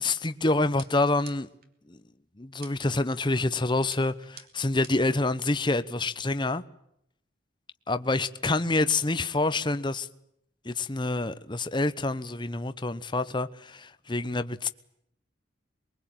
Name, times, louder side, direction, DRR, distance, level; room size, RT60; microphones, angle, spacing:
voice 1, 0.0-1.5 1.9-2.0 2.4-6.6 7.9-10.1 10.6-14.7, left 2 dB, 25° left, 1.0 m, -27 dB
sound 1, 0.8-1.7 2.6-3.1 3.9-5.2, right 7 dB, 55° right, 2.7 m, -49 dB
23.5 x 22.5 x 9.1 m
head